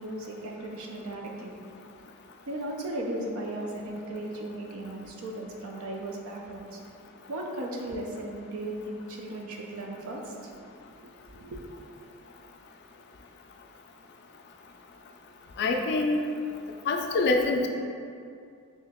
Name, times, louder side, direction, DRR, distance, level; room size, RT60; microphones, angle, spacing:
voice 1, 0.0-1.5 2.5-6.8 7.3-10.5 11.3-11.6, right 1 dB, 85° right, 0 dB, 0.5 m, -36 dB
voice 2, 15.6-16.2 16.9-17.7, left 3 dB, 50° left, 3 dB, 0.3 m, -25 dB
3.0 x 2.7 x 3.5 m, 2.4 s
head